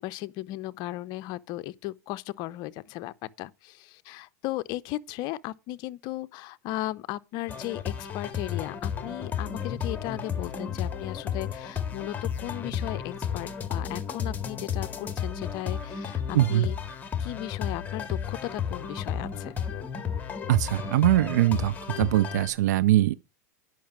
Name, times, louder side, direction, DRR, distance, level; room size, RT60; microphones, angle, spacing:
voice 1, 0.0-16.8 17.2-19.5, left 16 dB, 50° left, 0.6 m, -36 dB
sound 1, 7.5-22.5, left 7 dB, 20° left, 1.8 m, -33 dB
voice 2, 16.3-16.7 20.5-23.1, right 14 dB, 75° right, 0.4 m, -22 dB
10.5 x 5.9 x 6.1 m
hypercardioid pair, 110°, 9 cm